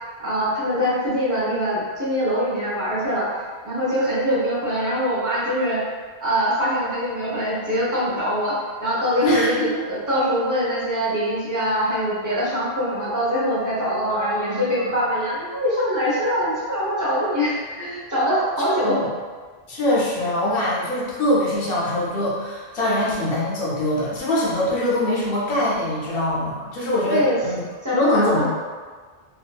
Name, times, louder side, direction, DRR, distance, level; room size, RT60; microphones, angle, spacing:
voice 1, 0.2-5.9 6.2-19.0 27.1-27.4 27.8-28.5, equal, 20° right, -9 dB, 0.7 m, -23 dB
voice 2, 9.2-9.8 14.1-14.9 18.8-19.1 19.7-27.6 27.9-28.5, left 1 dB, 65° left, -6 dB, 0.9 m, -23 dB
2.8 x 2.4 x 2.3 m, 1.5 s
omnidirectional pair, 1.1 m